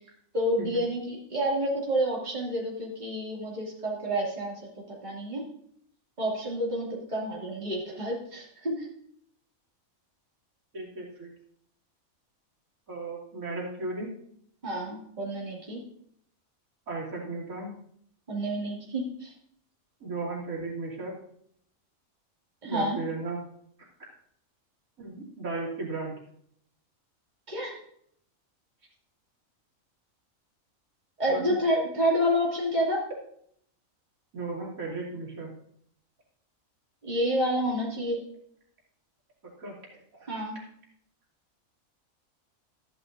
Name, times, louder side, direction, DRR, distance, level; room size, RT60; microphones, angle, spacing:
voice 1, 0.3-4.6 4.9-5.4 6.2-8.9 14.6-15.8 18.3-19.3 22.6-23.0 27.5-27.8 31.2-33.0 37.0-38.2 40.3-40.6, equal, 30° right, -4 dB, 2.6 m, -29 dB
voice 2, 10.7-11.3 12.9-14.1 16.9-17.7 20.0-21.2 22.6-23.4 25.0-26.1 31.3-31.5 34.3-35.5 39.4-40.3, right 3 dB, 75° right, -5 dB, 3.2 m, -35 dB
14.0 x 10.0 x 2.6 m, 0.68 s
omnidirectional pair, 1.5 m